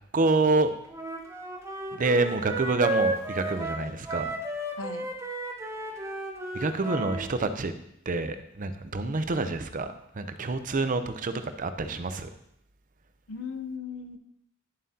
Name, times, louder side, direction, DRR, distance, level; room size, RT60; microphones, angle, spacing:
voice 1, 0.1-0.7 1.9-4.3 6.5-7.7 8.1-9.9 10.1-12.3, right 3 dB, 40° right, 10 dB, 0.6 m, -27 dB
Wind instrument woodwind instrument, 0.9-7.2, right 1 dB, 15° right, 0.9 m, -33 dB
voice 2, 4.8-5.1 13.3-14.2, left 5 dB, 90° left, 9 dB, 0.7 m, -37 dB
10.5 x 7.4 x 2.8 m, 0.77 s
head